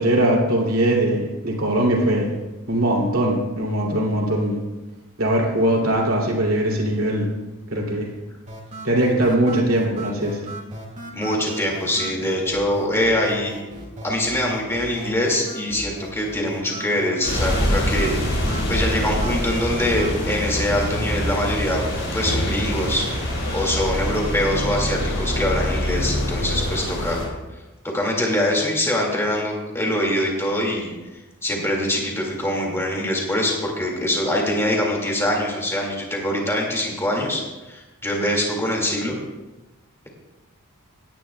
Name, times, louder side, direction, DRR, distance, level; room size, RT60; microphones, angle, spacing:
voice 1, 0.0-2.3 2.7-4.6 5.2-7.3 7.7-8.1 8.8-10.4, right 1 dB, 65° right, -2 dB, 2.8 m, -20 dB
sound 1, 8.5-24.5, right 1 dB, 35° right, 2.0 m, -38 dB
voice 2, 11.1-13.5 14.0-18.2 18.7-21.9 22.1-23.1 23.5-27.2 27.8-30.9 31.4-39.1, left 1 dB, 10° left, -1 dB, 2.1 m, -23 dB
sound 2, 17.2-27.3, equal, 55° left, 4.2 m, -25 dB
17.5 x 10.0 x 2.3 m, 1.1 s
head